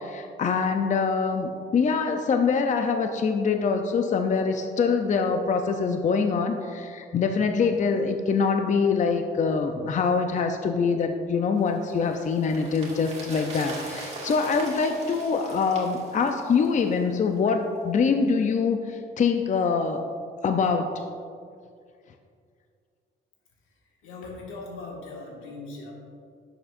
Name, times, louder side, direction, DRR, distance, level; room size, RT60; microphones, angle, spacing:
voice 1, 0.0-20.1 20.4-20.9, left 5 dB, 40° left, 5 dB, 0.5 m, -24 dB
sound 1, 11.7-17.1 17.4-17.5, right 2 dB, 35° right, 2.0 m, -41 dB
voice 2, 23.7-25.9, left 3 dB, 85° left, -2 dB, 1.7 m, -40 dB
10.5 x 7.1 x 2.5 m, 2.3 s
cardioid pair, 90°, 20 cm